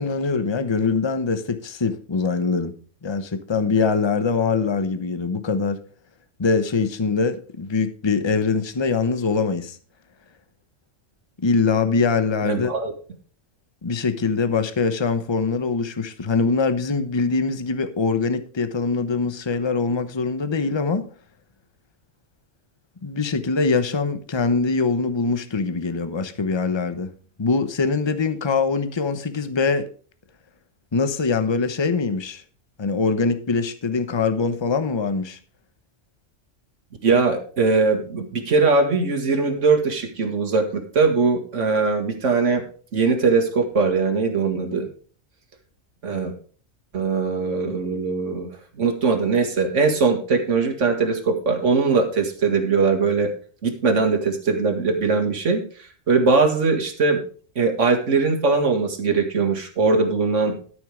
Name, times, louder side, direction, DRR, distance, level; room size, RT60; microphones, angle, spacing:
voice 1, 0.0-2.7 3.0-5.8 6.4-9.8 11.4-12.7 13.8-21.1 23.0-27.1 27.4-29.9 30.9-32.4 32.8-35.4, left 4 dB, 25° left, 0.8 m, -23 dB
voice 2, 12.4-12.9 37.0-42.6 42.9-44.9 46.0-46.3 46.9-53.3 53.6-55.6 56.1-57.2 57.6-60.6, right 4 dB, 70° right, 2.1 m, -21 dB
12.5 x 6.4 x 5.0 m
omnidirectional pair, 1.3 m